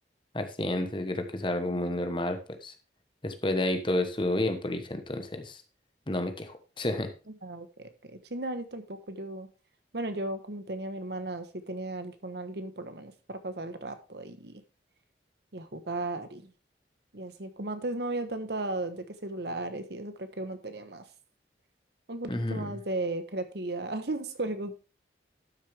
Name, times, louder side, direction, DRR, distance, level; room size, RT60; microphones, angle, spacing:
voice 1, 0.3-2.7 3.2-5.6 6.1-7.1 22.3-22.7, left 1 dB, 25° left, 8 dB, 1.1 m, -30 dB
voice 2, 7.4-9.5 9.9-14.6 15.5-16.5 17.1-21.0 22.1-24.7, right 2 dB, 65° right, 9 dB, 1.2 m, -35 dB
12.0 x 6.5 x 3.4 m, 0.33 s
head